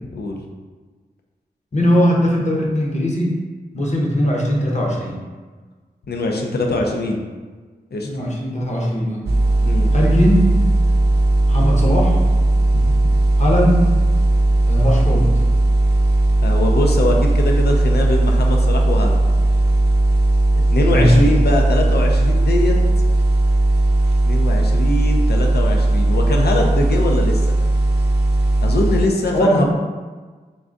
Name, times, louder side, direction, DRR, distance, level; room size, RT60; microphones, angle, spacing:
voice 1, 1.7-3.4 3.7-5.2 8.0-9.2 9.9-10.6 11.5-12.2 13.4-13.9 14.7-15.4 20.9-21.2 29.3-29.7, equal, 45° left, -2 dB, 0.9 m, -19 dB
voice 2, 6.1-7.2 7.9-8.1 9.6-9.9 12.7-13.0 16.4-19.3 20.7-22.8 24.2-27.4 28.6-29.7, left 2 dB, 75° left, 1 dB, 0.6 m, -22 dB
sound 1, 9.3-29.1, right 2 dB, 80° right, 0.5 m, -16 dB
3.8 x 2.4 x 3.8 m, 1.4 s
cardioid pair, 50°, 17 cm